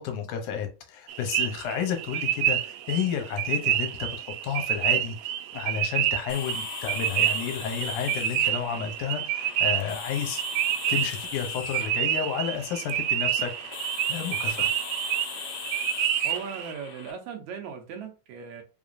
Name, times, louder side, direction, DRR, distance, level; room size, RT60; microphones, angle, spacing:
voice 1, 0.0-10.4 10.9-14.7, left 8 dB, 75° left, 5 dB, 2.3 m, -31 dB
sound 1, 1.1-16.7, right 11 dB, 90° right, 2.2 m, -28 dB
sound 2, 6.3-17.1, left 5 dB, 60° left, 1.8 m, -39 dB
voice 2, 16.2-18.6, right 6 dB, 70° right, 4 dB, 2.0 m, -38 dB
5.1 x 3.6 x 2.5 m, 0.30 s
omnidirectional pair, 3.7 m